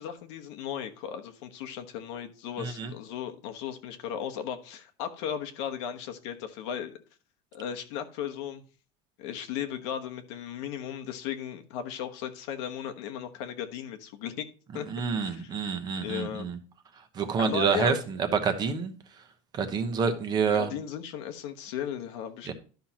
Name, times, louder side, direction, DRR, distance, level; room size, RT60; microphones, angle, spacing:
voice 1, 0.0-6.9 7.5-8.6 9.2-14.5 14.7-14.9 15.2-15.5 16.0-16.5 17.4-18.0 20.5-22.5, left 9 dB, 80° left, 1.1 m, -36 dB
voice 2, 2.6-2.9 14.9-16.6 17.1-18.2 18.4-18.9 19.5-20.7 22.5-22.6, right 6 dB, 30° right, 1.0 m, -28 dB
12.0 x 5.7 x 2.9 m
cardioid pair, 160°, 15 cm